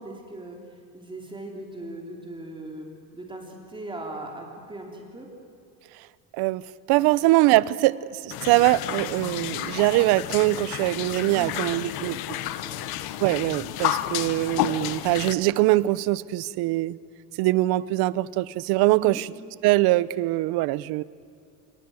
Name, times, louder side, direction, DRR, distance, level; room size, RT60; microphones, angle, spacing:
voice 1, 0.0-5.3 7.2-7.3 11.3-13.0 19.0-19.2, right 2 dB, 10° right, 1 dB, 3.4 m, -40 dB
voice 2, 6.3-12.4 13.2-17.0 17.4-19.3 19.6-21.0, right 18 dB, 65° right, 19 dB, 0.8 m, -23 dB
sound 1, 8.3-15.3, left 13 dB, 60° left, 1.2 m, -31 dB
27.0 x 24.0 x 8.0 m, 2.4 s
cardioid pair, 135°, 42 cm